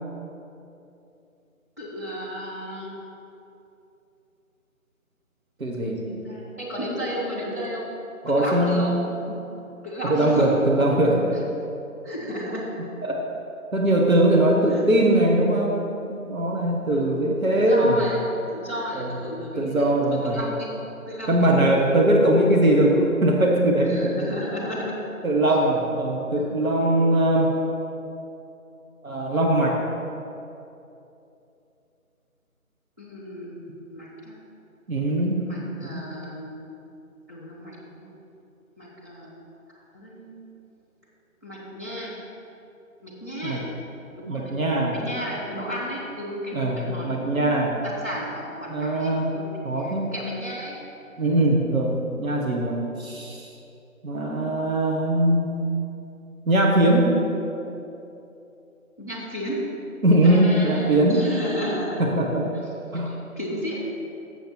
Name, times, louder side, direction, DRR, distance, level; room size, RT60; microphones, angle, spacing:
voice 1, 1.8-3.0 5.7-7.9 8.3-8.9 9.8-10.6 11.3-11.4 12.0-12.7 14.7-14.8 16.9-18.2 18.5-20.7 21.1-21.5 23.9-24.9 33.0-34.3 35.4-36.6 37.3-38.1 38.8-39.4 39.9-40.5 41.4-42.1 43.0-43.6 44.2-44.5 44.9-50.7 59.0-59.6 60.2-62.0 63.0-63.8, equal, 10° right, -10 dB, 1.4 m, -33 dB
voice 2, 5.6-6.1 8.2-8.9 10.0-11.4 13.0-13.2 13.7-15.8 16.1-18.0 18.9-19.1 19.6-20.4 21.3-24.3 25.2-27.5 29.0-29.8 34.9-35.5 35.8-36.0 43.4-43.6 44.3-45.0 46.5-47.8 48.7-49.3 49.6-50.1 51.2-53.5 54.0-55.7 56.4-57.2 60.0-61.2 62.0-62.5 62.9-63.1, right 1 dB, 70° right, -1 dB, 1.4 m, -21 dB
7.5 x 7.0 x 6.0 m, 2.8 s
figure-of-eight pair, 160°, 43 cm